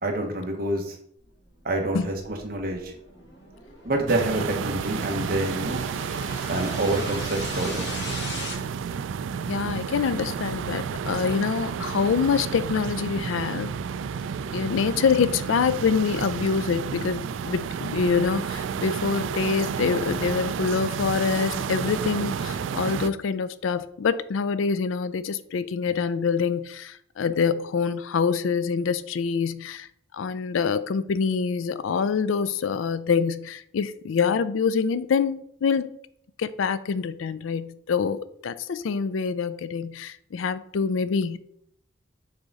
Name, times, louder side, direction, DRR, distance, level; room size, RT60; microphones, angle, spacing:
voice 1, 0.0-1.0 1.6-2.9 3.8-5.9 6.5-8.0, right 1 dB, 50° right, 1.2 m, -27 dB
sound 1, 1.6-8.5, left 1 dB, 65° left, 1.9 m, -39 dB
sound 2, 4.1-23.1, right 6 dB, 75° right, 0.3 m, -31 dB
voice 2, 9.4-13.7 14.5-29.9 30.1-35.9 36.4-41.4, left 5 dB, 85° left, 0.4 m, -25 dB
6.6 x 3.6 x 4.0 m
head